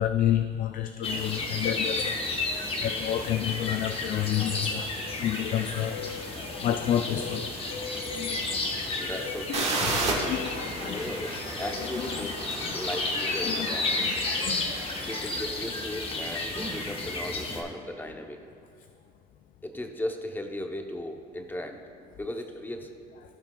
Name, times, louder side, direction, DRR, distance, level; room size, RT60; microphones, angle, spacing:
voice 1, 0.0-7.5 7.9-9.0 9.5-11.0 11.8-12.3 12.6-12.7 13.4-13.7 14.0-15.2, left 10 dB, 55° left, 0.4 m, -31 dB
sound 1, 1.0-17.6, left 3 dB, 35° left, 1.1 m, -32 dB
voice 2, 8.9-9.7 10.8-12.4 12.7-14.1 15.1-18.4 19.6-21.8 22.1-22.9, left 1 dB, 10° left, 0.7 m, -36 dB
sound 2, 9.5-15.2, right 3 dB, 40° right, 1.6 m, -34 dB
sound 3, 10.9-12.6 13.3-13.4 15.1-15.3 15.8-15.9 16.3-17.0, right 2 dB, 25° right, 1.2 m, -45 dB
16.5 x 5.8 x 2.3 m
cardioid pair, 110°, 17 cm